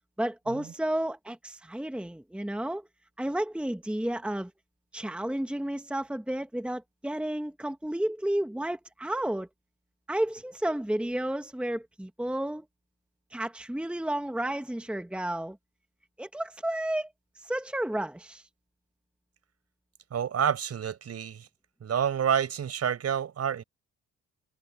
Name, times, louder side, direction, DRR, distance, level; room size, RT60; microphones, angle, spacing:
voice 1, 0.2-2.8 3.2-4.5 4.9-9.5 10.1-12.6 13.3-15.6 16.2-17.1 17.4-18.4, right 1 dB, 5° right, 1.4 m, -32 dB
voice 2, 20.1-21.5 21.8-23.6, right 8 dB, 55° right, 5.6 m, -28 dB
cardioid pair, 90°, 30 cm